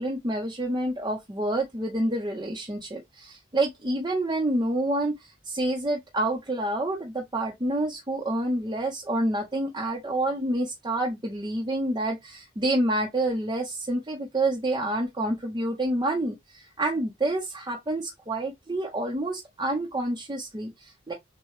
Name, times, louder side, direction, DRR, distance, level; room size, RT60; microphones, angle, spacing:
voice 1, 0.0-21.1, right 1 dB, 20° right, 0.7 m, -28 dB
6.3 x 2.2 x 3.5 m
head